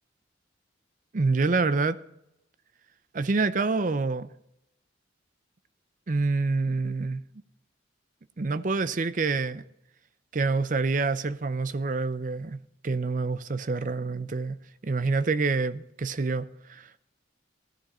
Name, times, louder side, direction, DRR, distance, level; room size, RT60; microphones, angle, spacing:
voice 1, 1.1-2.0 3.1-4.3 6.1-7.2 8.4-9.6 10.3-12.6 12.8-14.6 14.8-17.0, right 3 dB, 40° right, 0.5 m, -27 dB
15.5 x 11.5 x 4.3 m
head